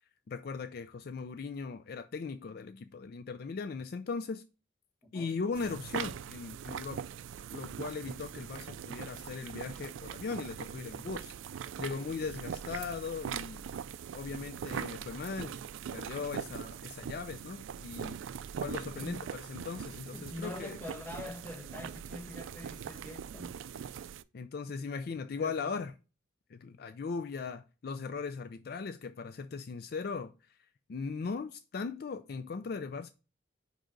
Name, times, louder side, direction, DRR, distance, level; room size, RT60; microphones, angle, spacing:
voice 1, 0.3-4.4 5.1-7.0 7.5-11.3 11.8-13.6 14.1-15.6 15.9-18.2 18.6-20.8 24.3-25.9 26.5-30.3 30.9-33.1, left 5 dB, 55° left, 0.4 m, -38 dB
sound 1, 5.5-24.2, right 8 dB, 90° right, 0.3 m, -41 dB
voice 2, 20.1-23.6 25.2-25.7, left 1 dB, 10° left, 1.1 m, -44 dB
5.0 x 4.9 x 3.8 m
head